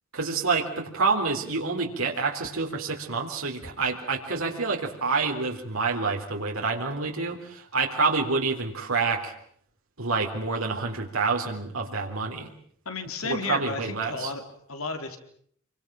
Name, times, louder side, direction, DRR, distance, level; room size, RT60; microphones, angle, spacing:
voice 1, 0.1-9.3 10.0-12.5 13.2-14.3, right 4 dB, 80° right, 0 dB, 3.7 m, -27 dB
voice 2, 12.9-14.4 14.7-15.2, left 4 dB, 90° left, 6 dB, 4.1 m, -33 dB
28.0 x 24.0 x 7.5 m, 0.64 s
head